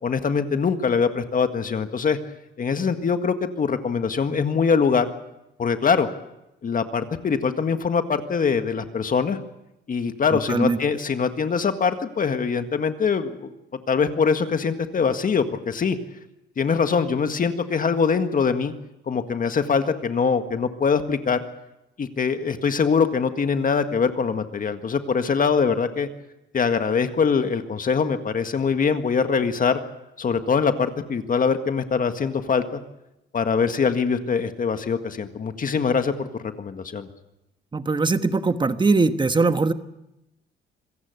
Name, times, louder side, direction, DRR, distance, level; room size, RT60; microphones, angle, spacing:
voice 1, 0.0-2.2 2.6-5.1 5.6-6.1 6.6-9.4 9.9-13.5 13.9-16.0 16.6-18.7 19.1-21.4 22.0-26.1 26.5-29.8 30.2-32.8 33.3-37.1, left 5 dB, 45° left, 8 dB, 1.8 m, -23 dB
voice 2, 37.7-39.7, right 3 dB, 25° right, 10 dB, 1.3 m, -21 dB
26.0 x 16.0 x 8.1 m, 0.90 s
cardioid pair, 90°, 20 cm